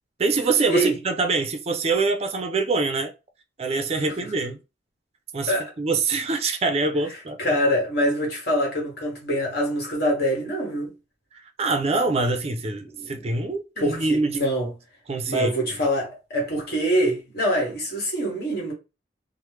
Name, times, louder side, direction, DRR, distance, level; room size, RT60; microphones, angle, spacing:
voice 1, 0.2-3.1 3.6-4.6 5.3-7.4 11.3-14.4 15.1-15.5, right 3 dB, 35° right, 0.4 m, -25 dB
voice 2, 7.4-10.9 13.0-13.2 13.8-14.7 15.3-18.7, equal, 60° left, 1.4 m, -24 dB
3.1 x 2.0 x 3.1 m
head